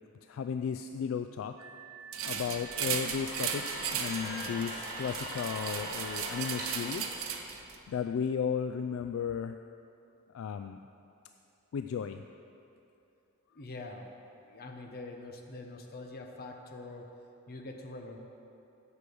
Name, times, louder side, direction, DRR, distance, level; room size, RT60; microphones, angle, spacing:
voice 1, 0.2-1.6 2.2-7.2 7.9-9.6 10.3-10.8 11.7-12.2, left 7 dB, 70° left, 8 dB, 0.3 m, -34 dB
Glass, 1.6-6.6, right 5 dB, 15° right, 0.6 m, -50 dB
sound 1, 2.1-7.8, right 7 dB, 80° right, 0.8 m, -37 dB
sound 2, 2.4-8.0, right 1 dB, 40° right, 2.6 m, -42 dB
voice 2, 13.5-14.1 14.5-17.1 17.5-18.2, left 2 dB, 50° left, 3 dB, 0.9 m, -44 dB
8.4 x 6.2 x 7.7 m, 2.8 s
head